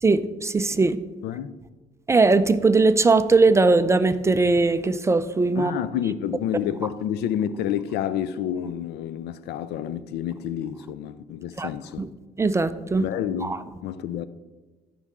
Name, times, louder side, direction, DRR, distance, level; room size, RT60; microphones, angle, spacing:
voice 1, 0.0-1.0 2.1-5.7 11.6-11.7 12.0-12.1 12.4-13.0 13.4-13.6, right 3 dB, 15° right, 0.4 m, -20 dB
voice 2, 1.2-1.6 5.6-12.1 13.0-14.3, left 10 dB, 75° left, 0.5 m, -29 dB
13.5 x 5.5 x 3.7 m
cardioid pair, 110°, 17 cm